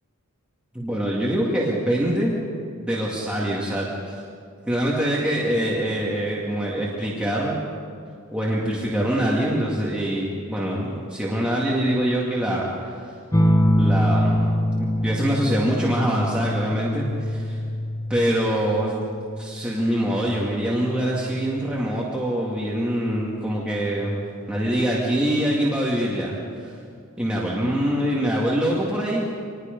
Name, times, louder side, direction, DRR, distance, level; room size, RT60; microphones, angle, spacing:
voice 1, 0.7-2.3 2.8-4.2 4.7-7.6 8.3-13.0 13.8-14.4 14.8-17.6 18.1-18.9 19.4-24.1 24.5-26.7 27.2-29.3, right 1 dB, 5° right, -6 dB, 2.2 m, -24 dB
sound 1, 13.3-22.4 23.8-24.4, equal, 15° left, 1.2 m, -25 dB
26.5 x 20.0 x 5.3 m, 2.3 s
head